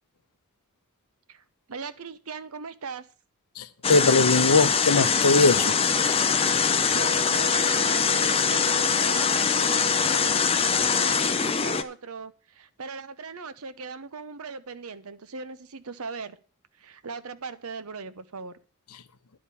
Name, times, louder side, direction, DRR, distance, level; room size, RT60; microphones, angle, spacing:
voice 1, 1.7-3.1 6.9-16.4 16.8-18.5, right 4 dB, 75° right, 13 dB, 0.9 m, -39 dB
voice 2, 3.5-5.8 18.9-19.0, left 3 dB, 85° left, 13 dB, 0.8 m, -21 dB
sound 1, 3.8-11.8, left 6 dB, 25° left, 0.6 m, -23 dB
11.0 x 5.1 x 8.3 m, 0.38 s
head